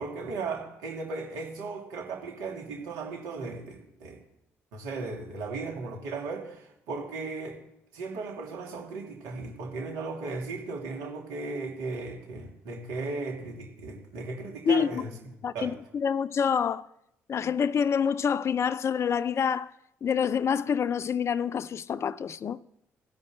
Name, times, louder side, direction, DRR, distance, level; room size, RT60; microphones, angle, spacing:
voice 1, 0.0-4.2 4.7-7.6 7.9-15.1 15.5-15.7, right 3 dB, 85° right, 2.9 m, -36 dB
voice 2, 14.7-15.0 15.4-16.9 17.3-19.7 20.0-22.6, left 7 dB, 50° left, 0.5 m, -27 dB
16.0 x 5.4 x 7.7 m
supercardioid pair, 60°, 6 cm